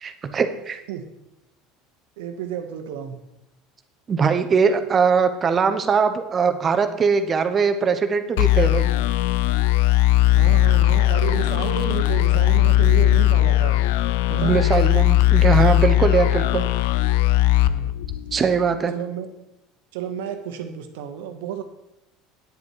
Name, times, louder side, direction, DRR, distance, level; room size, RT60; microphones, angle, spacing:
voice 1, 0.0-0.8 4.1-8.9 14.3-16.7 18.3-18.9, right 5 dB, 30° right, 8 dB, 1.0 m, -21 dB
voice 2, 2.2-3.2 10.2-13.8 14.3-14.7 17.6-17.9 18.9-19.3 19.9-21.6, right 9 dB, 85° right, 6 dB, 1.3 m, -31 dB
sound 1, 8.4-18.7, left 14 dB, 80° left, 0.4 m, -18 dB
9.3 x 8.5 x 4.6 m, 0.88 s
supercardioid pair, 100°, 0 cm